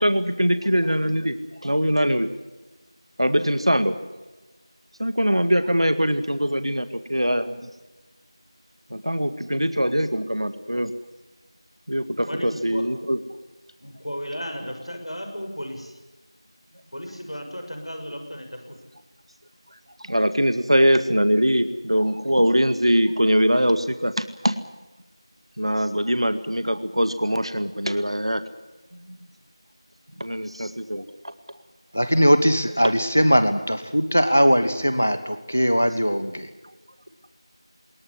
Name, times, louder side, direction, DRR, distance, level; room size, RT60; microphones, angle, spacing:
voice 1, 0.0-1.4 1.6-2.3 3.2-4.0 5.0-7.7 8.9-10.9 11.9-13.2 20.0-24.6 25.6-28.4 29.1-29.2 30.2-31.1, equal, 75° right, 10 dB, 1.9 m, -22 dB
voice 2, 12.3-12.8 13.8-16.0 16.9-18.8, equal, 80° left, 5 dB, 6.4 m, -34 dB
voice 3, 31.9-36.5, equal, 20° left, 12 dB, 0.9 m, -20 dB
20.0 x 20.0 x 9.9 m, 1.1 s
figure-of-eight pair, 180°, 3 cm